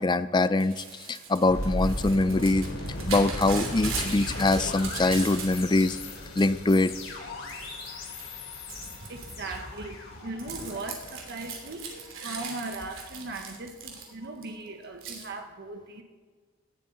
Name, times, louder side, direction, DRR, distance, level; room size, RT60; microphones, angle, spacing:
voice 1, 0.0-2.7 3.1-6.0 6.4-6.9, left 2 dB, 20° left, 14 dB, 0.4 m, -23 dB
Crumpling crinkling / Tearing, 0.6-5.8 6.2-7.0 7.5-7.9 8.2-14.4 15.0-15.3, right 4 dB, 75° right, 2.8 m, -39 dB
sound 1, 1.5-12.5, left 1 dB, 65° left, 3.4 m, -37 dB
voice 2, 8.6-16.0, right 2 dB, 55° right, 4 dB, 1.2 m, -39 dB
18.0 x 12.0 x 3.9 m, 1.5 s
head